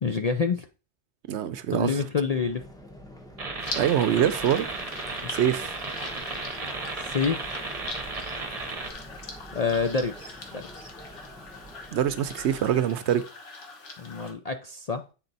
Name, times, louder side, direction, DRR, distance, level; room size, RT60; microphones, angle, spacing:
voice 1, 0.0-0.7 1.7-2.6 5.2-5.3 7.0-7.7 9.5-10.9 14.0-15.0, left 5 dB, 50° left, 5 dB, 0.4 m, -28 dB
voice 2, 1.3-2.0 3.7-4.7 5.3-5.8 11.9-13.2, right 10 dB, 70° right, 13 dB, 0.8 m, -24 dB
sound 1, 2.3-12.8, equal, 5° left, 0.9 m, -47 dB
sound 2, 3.4-8.9, right 3 dB, 35° right, 1.0 m, -34 dB
sound 3, 3.6-14.3, left 3 dB, 70° left, 1.5 m, -42 dB
8.5 x 4.3 x 4.0 m, 0.33 s
omnidirectional pair, 1.2 m